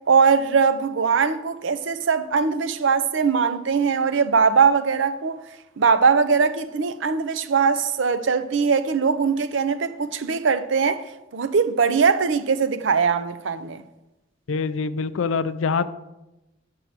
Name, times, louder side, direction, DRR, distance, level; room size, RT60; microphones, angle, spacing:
voice 1, 0.1-5.4 5.8-11.0 11.3-13.8, right 5 dB, 70° right, 0.6 m, -21 dB
voice 2, 14.5-15.9, left 5 dB, 80° left, 0.5 m, -24 dB
7.5 x 4.7 x 6.6 m
head